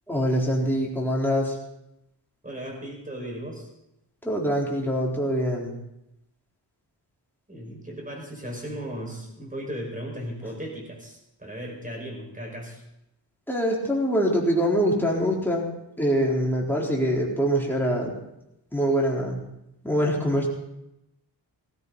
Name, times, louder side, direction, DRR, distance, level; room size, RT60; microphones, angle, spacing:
voice 1, 0.1-1.5 4.2-5.7 13.5-15.7 16.0-18.1 18.7-19.4 19.8-20.5, equal, 5° left, -3 dB, 4.0 m, -24 dB
voice 2, 2.4-3.7 7.5-12.8, equal, 20° right, 0 dB, 5.5 m, -36 dB
18.5 x 16.0 x 4.1 m, 0.84 s
wide cardioid pair, 140°, 44 cm